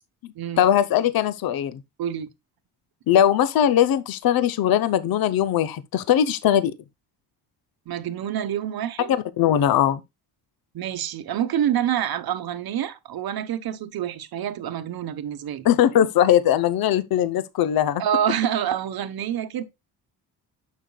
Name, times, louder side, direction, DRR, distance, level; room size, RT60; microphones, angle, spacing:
voice 1, 0.6-1.8 3.1-6.7 9.4-10.0 15.6-18.0, left 10 dB, 60° left, 0.7 m, -20 dB
voice 2, 2.0-2.3 7.9-9.1 10.7-15.7 18.0-19.6, right 10 dB, 60° right, 1.1 m, -27 dB
9.7 x 6.6 x 2.3 m
cardioid pair, 110°, 40 cm